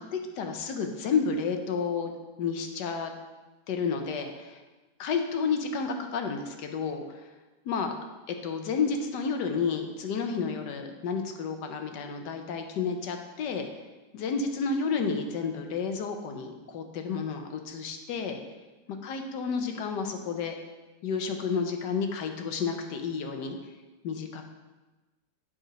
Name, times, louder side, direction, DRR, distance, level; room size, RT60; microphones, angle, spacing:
voice 1, 0.0-2.1 2.4-3.1 3.7-4.6 5.0-7.3 7.6-7.9 8.3-13.7 14.1-18.4 19.0-20.5 21.0-23.6 24.0-24.4, left 5 dB, 75° left, 5 dB, 1.4 m, -31 dB
9.2 x 4.4 x 5.0 m, 1.2 s
omnidirectional pair, 1.8 m